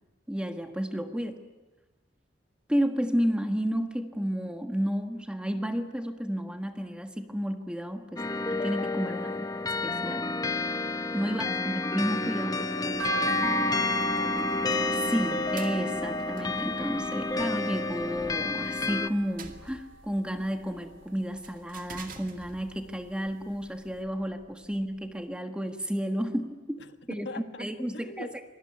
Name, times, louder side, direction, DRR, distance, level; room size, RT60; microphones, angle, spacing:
voice 1, 0.3-1.4 2.7-8.2 8.5-9.3 9.6-10.3 11.1-12.6 14.9-26.8 27.1-27.3 27.6-28.5, equal, 5° right, 6 dB, 1.5 m, -31 dB
sound 1, 8.2-19.1, left 3 dB, 20° left, 0.9 m, -30 dB
voice 2, 9.1-9.5 11.3-11.9 12.8-14.6 26.8-27.7 27.9-28.3, left 2 dB, 65° left, 9 dB, 1.5 m, -44 dB
sound 2, 12.9-25.4, right 4 dB, 45° right, 2.2 m, -52 dB
sound 3, 13.0-19.3 19.7-20.8 21.2-22.6 23.0-23.1 23.5-23.6 23.9-24.0, right 1 dB, 85° right, 1.3 m, -35 dB
26.5 x 20.0 x 9.9 m, 1.2 s
head